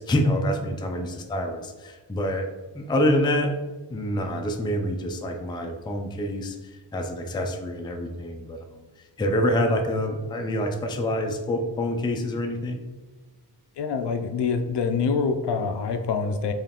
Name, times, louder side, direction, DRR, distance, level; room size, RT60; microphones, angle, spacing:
voice 1, 0.0-2.5 2.7-3.5 3.9-8.8 9.2-12.8, equal, 10° left, 4 dB, 0.3 m, -26 dB
voice 2, 13.8-16.5, left 5 dB, 70° left, 7 dB, 0.5 m, -25 dB
4.5 x 3.2 x 3.5 m, 1.3 s
wide cardioid pair, 155°, 43 cm